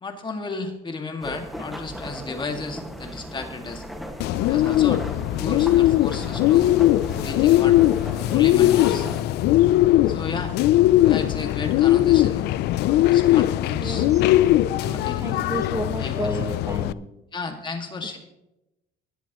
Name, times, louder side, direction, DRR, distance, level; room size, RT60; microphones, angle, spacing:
voice 1, 0.0-3.8 4.4-5.0 5.4-6.7 7.2-7.8 8.3-9.1 10.1-10.5 11.1-12.5 12.8-14.1 14.7-15.7 15.9-16.4 17.3-18.2, left 3 dB, 25° left, 4 dB, 2.0 m, -34 dB
sound 1, 1.2-9.2, equal, ahead, 1.7 m, -37 dB
Bird, 4.2-16.9, left 14 dB, 80° left, 0.4 m, -20 dB
voice 2, 13.7-14.2 15.2-17.1, right 1 dB, 20° right, 5 dB, 1.3 m, -31 dB
19.5 x 11.0 x 3.0 m, 0.92 s
cardioid pair, 110°, 17 cm